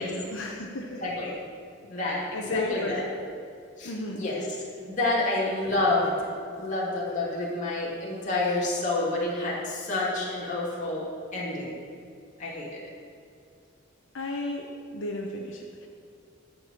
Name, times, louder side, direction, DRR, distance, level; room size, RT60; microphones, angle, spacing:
voice 1, 0.0-1.0 2.3-3.3 3.8-4.2 14.1-14.6 14.9-15.9, left 2 dB, 70° left, 0 dB, 1.1 m, -33 dB
voice 2, 1.0-1.4 1.9-2.2 2.5-3.0 3.8-4.4 4.8-11.1 11.3-11.8 12.4-12.8, left 2 dB, 40° left, -6 dB, 2.5 m, -29 dB
13.0 x 4.9 x 8.6 m, 2.4 s
head